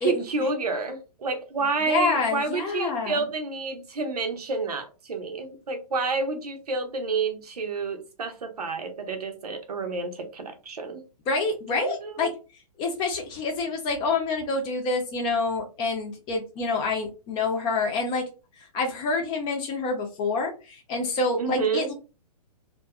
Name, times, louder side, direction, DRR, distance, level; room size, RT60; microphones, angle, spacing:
voice 1, 0.0-11.0 11.8-12.3 21.4-21.9, right 4 dB, 70° right, 0.7 m, -29 dB
voice 2, 1.9-3.2 11.3-12.3 12.8-18.2 18.6-21.9, left 3 dB, 25° left, 0.7 m, -27 dB
2.7 x 2.2 x 2.2 m
figure-of-eight pair, 125°, 21 cm